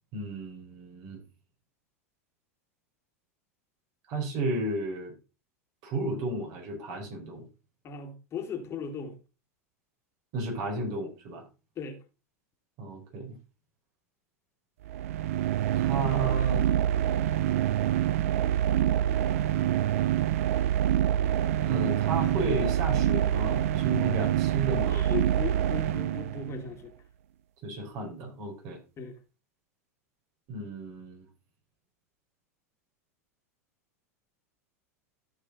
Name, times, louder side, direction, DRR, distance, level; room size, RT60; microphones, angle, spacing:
voice 1, 0.1-1.2 4.1-5.1 5.8-7.4 10.3-11.4 12.8-13.4 15.8-16.7 21.6-25.1 27.6-28.8 30.5-31.3, right 2 dB, 55° right, 5.2 m, -33 dB
voice 2, 7.8-9.2 11.8-12.0 24.9-26.9 29.0-29.2, left 6 dB, 35° left, 2.0 m, -37 dB
sound 1, 14.8-26.7, right 11 dB, 70° right, 0.5 m, -26 dB
13.5 x 5.3 x 4.1 m
hypercardioid pair, 100°, 8 cm